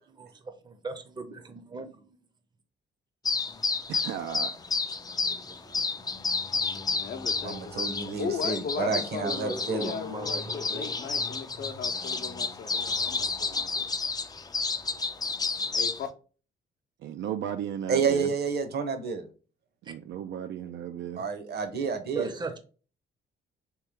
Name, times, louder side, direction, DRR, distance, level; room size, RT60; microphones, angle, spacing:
voice 1, 0.1-2.2 5.1-6.2 6.5-6.6 7.0-7.1 9.2-10.9 19.9-20.0 22.1-22.6, right 4 dB, 20° right, 0.6 m, -39 dB
sound 1, 3.2-16.1, left 4 dB, 20° left, 0.4 m, -31 dB
voice 2, 3.9-4.5 17.0-18.3 19.8-21.3, right 9 dB, 70° right, 0.4 m, -35 dB
voice 3, 6.9-13.9 15.7-16.1, left 6 dB, 55° left, 0.7 m, -37 dB
voice 4, 7.4-9.9 17.9-19.2 21.2-22.3, right 5 dB, 55° right, 0.9 m, -29 dB
3.2 x 3.1 x 3.5 m
cardioid pair, 90°, 20 cm